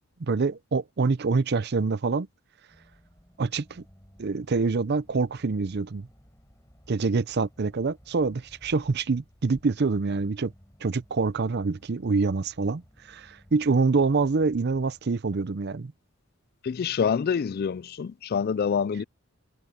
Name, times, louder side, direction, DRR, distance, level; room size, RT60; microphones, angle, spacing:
voice 1, 0.2-2.3 3.4-3.8 4.2-6.1 6.9-10.5 10.8-12.8 13.1-15.9, right 4 dB, 50° right, 0.5 m, -26 dB
sound 1, 2.7-15.0, equal, 15° left, 4.7 m, -57 dB
voice 2, 16.6-19.0, left 6 dB, 45° left, 0.3 m, -26 dB
head